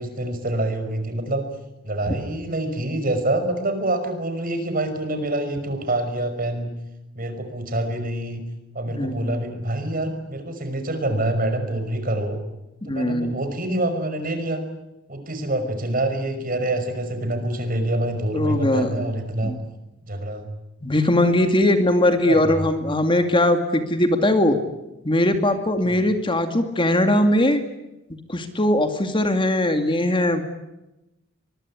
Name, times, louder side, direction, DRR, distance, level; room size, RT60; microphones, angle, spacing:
voice 1, 0.0-1.4 1.8-6.7 7.2-8.4 8.7-12.4 12.9-14.6 15.1-19.5 20.0-20.5 22.3-22.6 25.8-26.0, right 1 dB, 45° right, 7 dB, 5.5 m, -26 dB
voice 2, 8.9-9.4 12.8-13.4 18.3-19.1 19.4-19.6 20.8-24.6 25.0-27.6 28.3-30.4, left 1 dB, 25° left, 7 dB, 2.3 m, -20 dB
24.0 x 22.0 x 9.9 m, 0.96 s
head